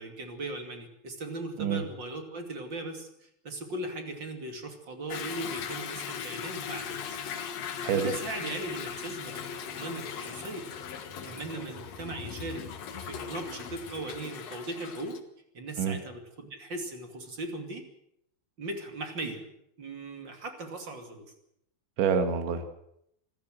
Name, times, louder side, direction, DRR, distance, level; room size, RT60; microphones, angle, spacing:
voice 1, 0.0-7.1 7.9-10.7 11.2-12.7 13.0-15.2 15.5-17.8 18.6-19.5 19.8-21.3, right 2 dB, 30° right, 5 dB, 2.4 m, -38 dB
Toilet flush / Drip / Trickle dribble, 5.1-15.2, left 7 dB, 70° left, 1.6 m, -39 dB
voice 2, 22.0-22.7, right 6 dB, 75° right, 7 dB, 4.2 m, -27 dB
25.5 x 14.5 x 7.7 m, 0.77 s
omnidirectional pair, 5.5 m